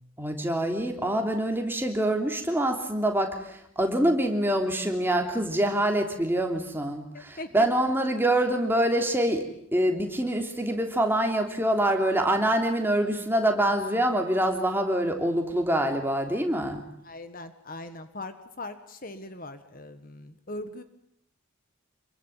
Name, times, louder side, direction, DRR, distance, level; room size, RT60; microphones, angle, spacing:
voice 1, 0.2-9.5 9.7-16.8, right 1 dB, 10° right, 3 dB, 3.2 m, -25 dB
voice 2, 7.4-7.7 17.0-20.8, left 2 dB, 40° left, 10 dB, 1.5 m, -40 dB
27.0 x 23.0 x 9.2 m, 0.73 s
head